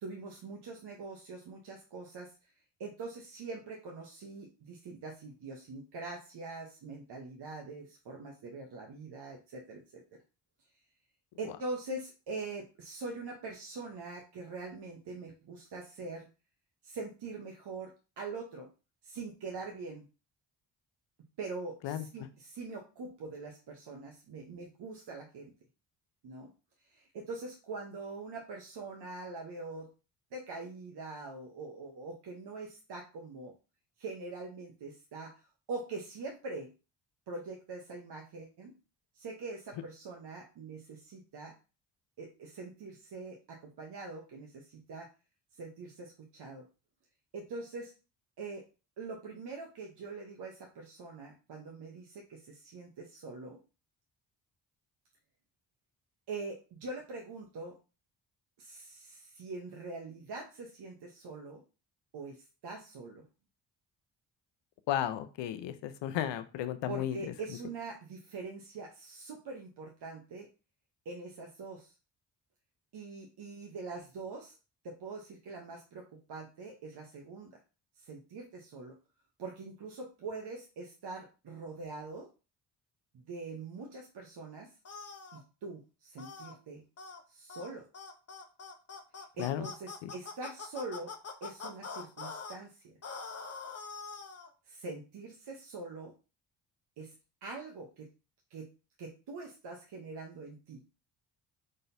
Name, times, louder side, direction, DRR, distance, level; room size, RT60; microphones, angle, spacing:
voice 1, 0.0-2.3 2.8-10.0 11.4-16.3 16.8-17.9 18.2-18.7 19.0-20.1 21.4-25.5 26.2-26.5 26.9-29.9 30.3-33.5 34.0-36.7 37.3-38.7 39.1-41.5 42.2-45.1 45.6-46.6 47.3-47.9 48.4-48.6 49.0-53.6 56.3-57.8 58.6-61.6 62.1-63.2 66.9-70.5 71.0-71.9 72.9-74.5 74.8-77.6 78.0-78.9 79.4-82.3 83.1-84.7 85.3-86.8 87.3-87.8 89.4-91.1 91.4-92.8 94.7-96.1 97.0-97.1 97.4-98.1 98.5-98.7 99.0-100.8, right 3 dB, 55° right, 0 dB, 1.0 m, -43 dB
voice 2, 64.9-67.3 89.4-89.7 90.0-90.1, left 11 dB, 65° left, 10 dB, 0.7 m, -34 dB
sound 1, 84.8-85.4 86.2-86.5 87.0-87.2 87.5-87.7 87.9-92.6 93.0-94.5, left 5 dB, 30° left, 0.9 m, -44 dB
3.9 x 3.8 x 2.7 m, 0.32 s
hypercardioid pair, 50°, 47 cm